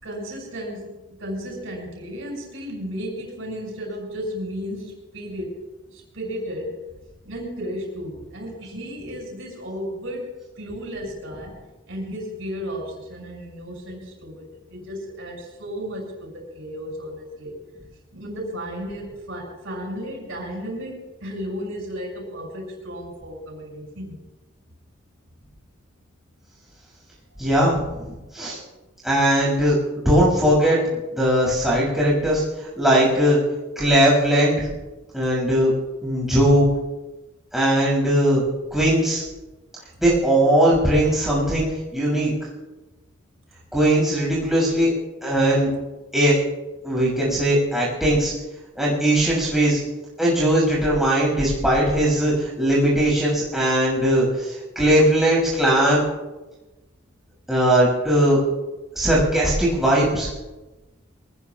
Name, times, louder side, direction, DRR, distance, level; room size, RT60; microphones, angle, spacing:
voice 1, 0.0-5.6 5.9-6.7 7.2-10.3 10.6-11.5 11.9-17.5 18.1-24.2, equal, 75° right, 0 dB, 6.7 m, -34 dB
voice 2, 27.4-28.6 29.0-29.8 30.0-32.4 32.8-33.4 33.8-34.7 35.1-35.7 36.0-36.7 37.5-38.4 38.7-39.2 40.0-42.3 43.7-44.9 45.2-45.7 46.1-46.3 46.8-48.3 48.8-49.8 50.2-56.0 57.5-58.4 58.9-60.3, right 1 dB, ahead, -5 dB, 6.5 m, -19 dB
25.0 x 20.0 x 2.5 m, 1.1 s
head